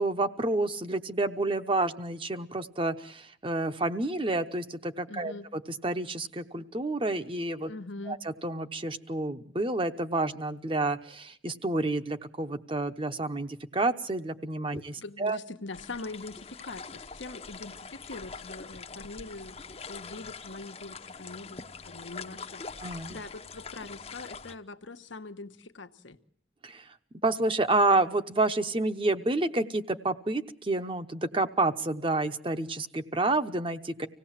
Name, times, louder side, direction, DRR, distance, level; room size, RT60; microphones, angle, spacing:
voice 1, 0.0-5.3 5.8-7.7 8.1-8.2 8.4-15.4 22.8-23.2 26.6-26.8 27.2-34.1, right 2 dB, 25° right, 9 dB, 0.9 m, -29 dB
voice 2, 5.1-5.5 7.7-8.2 14.7-22.8 23.1-26.2, left 3 dB, 85° left, 8 dB, 1.2 m, -43 dB
sound 1, 15.7-24.6, left 5 dB, 30° left, 0.8 m, -44 dB
25.5 x 17.5 x 7.4 m, 0.66 s
head